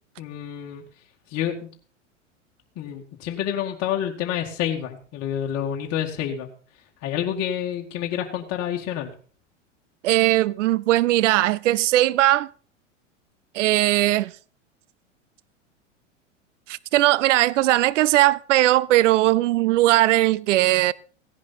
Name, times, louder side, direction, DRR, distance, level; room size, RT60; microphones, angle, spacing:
voice 1, 0.2-0.8 1.3-1.7 2.8-6.5 7.0-9.1, left 10 dB, 40° left, 2.1 m, -28 dB
voice 2, 10.0-12.5 13.5-14.3 16.7-20.9, right 16 dB, 70° right, 0.6 m, -19 dB
16.5 x 10.5 x 4.3 m
hypercardioid pair, 100°, 38 cm